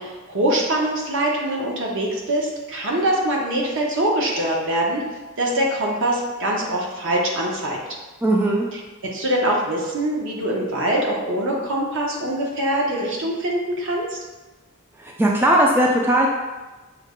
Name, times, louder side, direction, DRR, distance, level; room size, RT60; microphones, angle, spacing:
voice 1, 0.0-5.0 5.4-7.8 8.7-14.2, right 1 dB, 60° right, -2 dB, 0.9 m, -23 dB
voice 2, 8.2-8.7 15.0-16.3, right 1 dB, 10° right, -2 dB, 0.3 m, -18 dB
6.3 x 2.1 x 3.6 m, 1.2 s
head